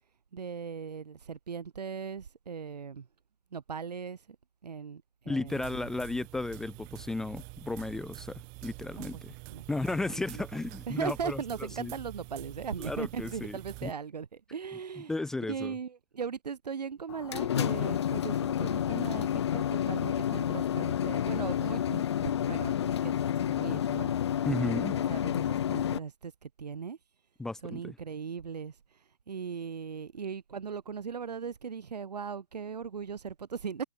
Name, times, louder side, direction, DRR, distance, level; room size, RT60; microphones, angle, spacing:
voice 1, 0.3-3.1 3.5-4.2 4.6-5.9 9.0-9.2 9.5-9.6 10.1-10.4 10.9-15.1 15.5-24.1 24.9-27.0 27.6-28.7 29.3-33.8, right 6 dB, 80° right, 5.8 m, -38 dB
voice 2, 5.3-9.3 9.7-11.4 11.8-11.9 12.8-13.9 15.1-15.7 24.4-24.9 27.4-27.9, left 2 dB, ahead, 1.2 m, -34 dB
sound 1, 5.5-13.9, right 36 dB, 15° right, 1.5 m, -46 dB
sound 2, 17.1-26.0, left 10 dB, 40° left, 1.8 m, -30 dB
hypercardioid pair, 175°, 21 cm